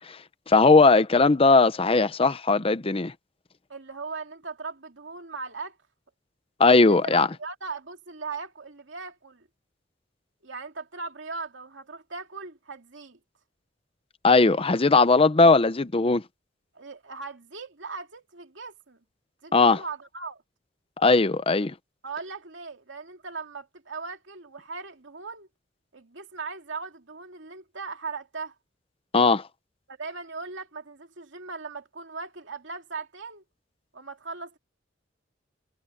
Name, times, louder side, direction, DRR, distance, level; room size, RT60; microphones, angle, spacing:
voice 1, 0.5-3.1 6.6-7.3 14.2-16.2 19.5-19.8 21.0-21.7 29.1-29.4, left 3 dB, 30° left, 0.7 m, -19 dB
voice 2, 3.7-5.8 6.9-9.5 10.4-13.2 16.7-19.0 19.4-20.4 22.0-25.5 25.9-28.5 29.9-33.4 33.9-34.6, right 4 dB, 80° right, 2.7 m, -38 dB
head